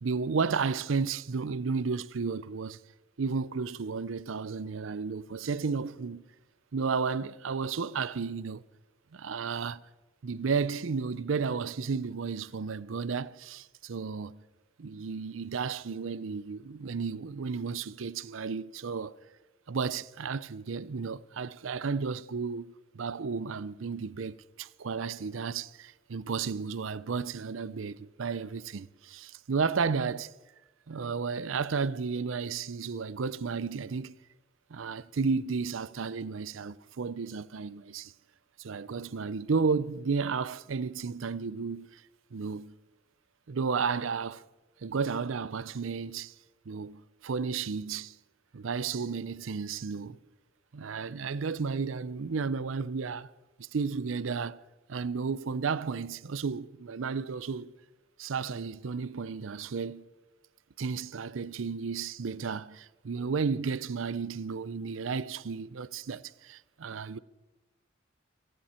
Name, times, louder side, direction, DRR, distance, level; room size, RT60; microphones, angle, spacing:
voice 1, 0.0-2.8 3.2-6.2 6.7-8.6 9.1-9.8 10.2-14.4 14.8-19.2 19.7-30.3 30.9-34.1 34.7-38.1 38.6-42.0 42.3-42.7 43.5-44.4 44.8-46.3 46.7-48.2 48.5-50.2 50.7-53.3 53.6-54.6 54.9-57.7 58.2-60.1 60.8-67.2, right 5 dB, 85° right, 0.6 m, -33 dB
28.5 x 10.5 x 4.4 m
head